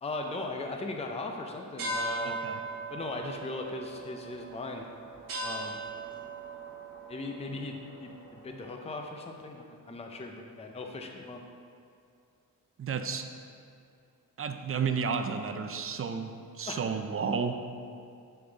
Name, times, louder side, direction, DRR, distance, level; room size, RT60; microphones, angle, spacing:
voice 1, 0.0-2.4 2.9-4.9 5.4-5.8 7.1-11.4 16.7-16.8, left 2 dB, 20° left, 3 dB, 0.5 m, -38 dB
sound 1, 1.8-8.6, right 2 dB, 65° right, 1.2 m, -39 dB
voice 2, 2.2-2.6 12.8-13.3 14.4-17.5, right 6 dB, 40° right, 7 dB, 0.5 m, -32 dB
8.0 x 6.9 x 3.9 m, 2.5 s
wide cardioid pair, 170°, 36 cm